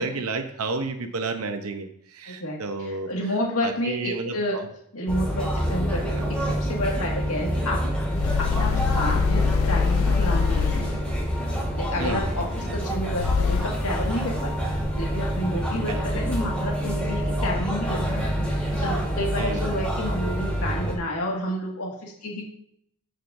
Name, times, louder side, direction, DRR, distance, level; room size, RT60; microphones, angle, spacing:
voice 1, 0.0-3.1 3.6-4.7 6.2-6.3 12.0-12.5 15.9-16.2 19.4-19.8, right 3 dB, 75° right, 7 dB, 0.8 m, -31 dB
voice 2, 2.3-4.6 4.9-7.8 8.1-10.7 11.8-22.5, left 1 dB, 85° left, -2 dB, 1.9 m, -30 dB
sound 1, 5.1-20.9, equal, 5° left, 3.1 m, -27 dB
sound 2, 8.1-11.2 13.1-14.0, left 6 dB, 65° left, 0.3 m, -24 dB
13.0 x 6.3 x 2.6 m, 0.73 s
head